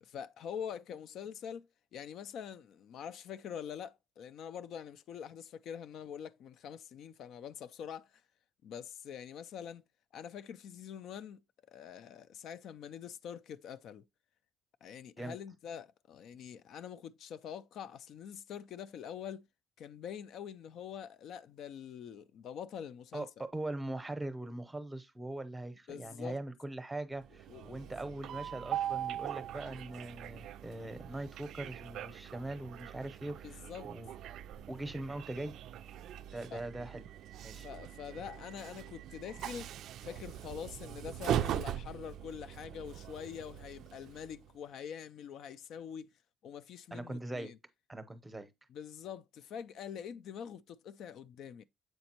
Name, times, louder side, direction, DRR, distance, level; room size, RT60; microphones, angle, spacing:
voice 1, 0.0-8.2 8.6-9.8 10.1-11.4 11.7-14.0 14.8-19.4 19.8-23.3 25.9-26.4 27.5-27.9 33.4-33.9 36.5-36.6 37.6-39.7 40.0-46.1 46.4-47.6 48.7-51.7, left 8 dB, 60° left, 0.3 m, -45 dB
voice 2, 23.1-34.1 34.7-35.5 36.3-37.0 37.4-37.7 46.9-47.5 47.9-48.5, right 2 dB, 10° right, 0.7 m, -41 dB
Train, 27.2-44.5, right 11 dB, 65° right, 0.3 m, -41 dB
7.9 x 5.1 x 2.9 m
cardioid pair, 165°, 0 cm